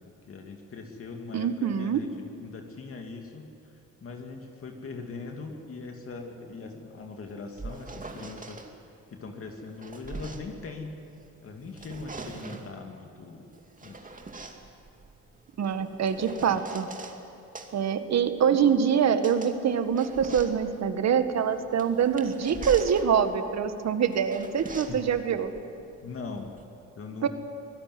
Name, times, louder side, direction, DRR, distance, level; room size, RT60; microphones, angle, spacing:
voice 1, 0.0-11.0 11.4-13.5 13.8-14.2 24.9-25.0 26.0-26.5 27.0-27.3, left 4 dB, 45° left, 2 dB, 2.6 m, -41 dB
voice 2, 1.3-2.0 15.6-16.9 17.7-25.5 27.2-27.3, right 7 dB, 60° right, 9 dB, 1.8 m, -25 dB
sound 1, 7.3-8.7 9.5-11.3 11.6-12.8 13.5-17.2 17.5-26.6, right 3 dB, 25° right, 2.5 m, -43 dB
24.5 x 17.0 x 9.6 m, 2.6 s
cardioid pair, 90°, 30 cm